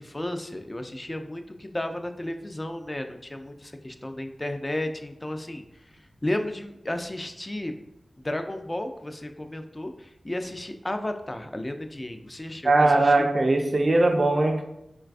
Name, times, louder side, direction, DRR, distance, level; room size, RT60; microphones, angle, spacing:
voice 1, 0.0-7.8 8.2-13.3, left 1 dB, 25° left, 0.3 m, -33 dB
voice 2, 12.6-14.6, right 2 dB, 50° right, 0.4 m, -20 dB
3.9 x 2.2 x 2.4 m
wide cardioid pair, 60°, 0 cm